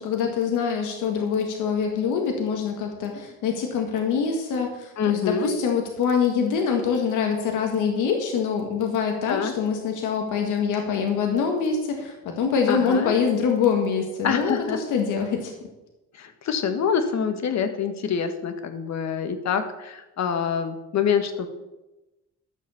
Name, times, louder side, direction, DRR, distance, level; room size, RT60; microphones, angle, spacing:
voice 1, 0.0-15.5, left 6 dB, 85° left, 3 dB, 1.7 m, -24 dB
voice 2, 5.0-5.5 9.3-9.5 12.7-13.1 14.2-14.8 16.1-21.5, left 7 dB, 65° left, 8 dB, 1.6 m, -26 dB
12.0 x 7.0 x 7.0 m, 1.0 s
cardioid pair, 90°, 30 cm